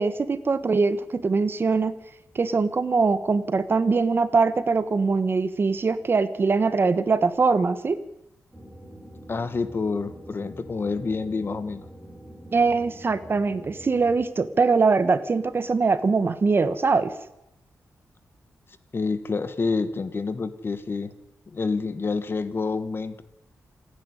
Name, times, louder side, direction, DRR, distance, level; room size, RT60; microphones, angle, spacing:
voice 1, 0.0-1.9 2.3-8.0 12.5-17.1, right 4 dB, 40° right, 13 dB, 1.2 m, -22 dB
sound 1, 8.5-14.2, equal, 5° right, 4.6 m, -44 dB
voice 2, 9.3-11.8 18.9-21.1 21.5-23.2, left 4 dB, 40° left, 12 dB, 1.5 m, -28 dB
27.0 x 10.0 x 9.9 m, 0.85 s
wide cardioid pair, 130°, 6 cm